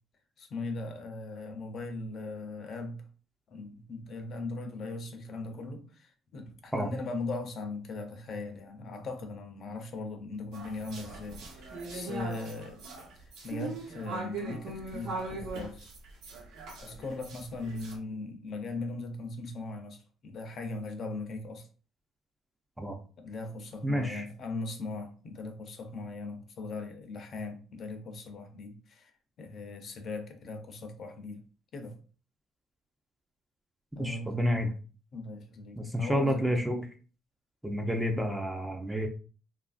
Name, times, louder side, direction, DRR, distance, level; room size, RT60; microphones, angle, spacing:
voice 1, 0.4-3.0 3.5-12.8 13.4-15.9 16.8-21.7 23.2-29.1 29.4-31.4 31.7-32.0 34.0-34.4 35.1-36.5, left 3 dB, 45° left, 0.5 m, -39 dB
sound 1, 10.5-18.0, right 3 dB, 80° right, 0.9 m, -40 dB
voice 2, 23.8-24.3 34.0-34.7 35.8-36.9 37.6-39.1, equal, 5° right, 0.4 m, -29 dB
2.8 x 2.4 x 2.4 m
cardioid pair, 125°, 0 cm